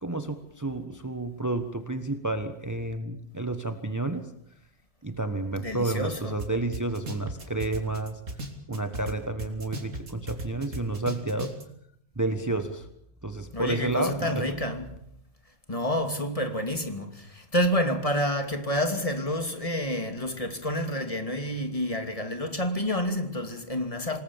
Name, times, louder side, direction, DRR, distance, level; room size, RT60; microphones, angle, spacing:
voice 1, 0.0-4.3 5.0-8.2 8.7-11.5 12.2-12.9 13.2-14.6, right 2 dB, 15° right, 1.3 m, -30 dB
voice 2, 5.6-6.3 13.5-14.9 15.7-24.2, equal, 25° left, 2.7 m, -29 dB
sound 1, 6.4-6.5 6.7-9.1 9.4-11.6, right 1 dB, 90° right, 3.7 m, -36 dB
27.0 x 20.0 x 7.3 m
omnidirectional pair, 1.3 m